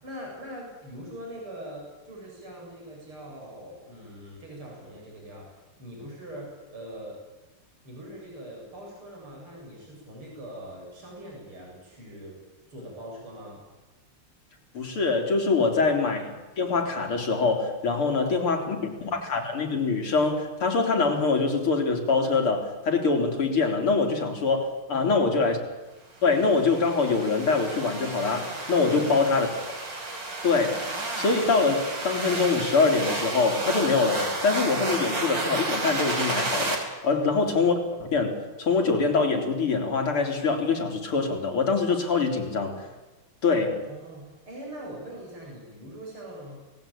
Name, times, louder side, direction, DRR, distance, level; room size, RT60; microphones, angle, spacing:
voice 1, 0.0-7.2 7.8-12.4 12.7-13.6 15.6-15.9 18.1-19.1 24.9-25.6 28.8-29.4 37.1-37.5 43.9-46.6, right 1 dB, 75° right, -2 dB, 8.7 m, -42 dB
voice 2, 14.7-25.6 26.2-29.5 30.4-37.7 38.0-42.8 43.4-43.9, left 4 dB, 75° left, 2 dB, 4.6 m, -24 dB
sound 1, 26.3-36.7, right 2 dB, 55° right, 5.6 m, -32 dB
29.5 x 19.5 x 8.9 m, 1.2 s
omnidirectional pair, 2.4 m